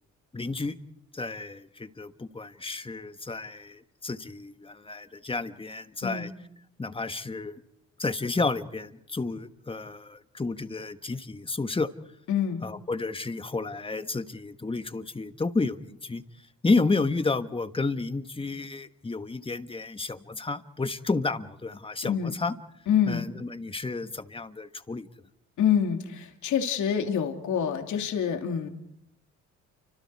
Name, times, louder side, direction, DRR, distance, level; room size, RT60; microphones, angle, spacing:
voice 1, 0.3-0.7 1.1-6.3 6.8-7.6 8.0-11.9 12.6-16.2 16.6-22.5 23.1-25.1, left 3 dB, 20° left, 10 dB, 1.5 m, -31 dB
voice 2, 12.3-12.6 22.0-22.4 22.9-23.2 25.6-28.7, left 8 dB, 75° left, 4 dB, 2.8 m, -26 dB
30.0 x 25.5 x 4.8 m, 0.77 s
cardioid pair, 90°, 30 cm